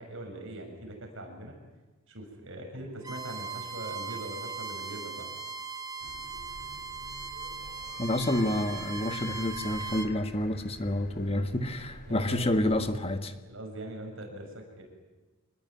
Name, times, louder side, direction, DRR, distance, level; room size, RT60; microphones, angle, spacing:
voice 1, 0.0-1.5 2.1-5.3 12.1-12.6 13.4-14.8, right 1 dB, 60° right, 3 dB, 7.1 m, -41 dB
Bowed string instrument, 3.0-10.1, right 4 dB, 20° right, 1.5 m, -39 dB
sound 1, 6.0-13.0, left 2 dB, 50° left, 4.0 m, -48 dB
voice 2, 8.0-13.3, left 1 dB, 25° left, 8 dB, 1.4 m, -29 dB
26.0 x 20.5 x 9.6 m, 1.2 s
head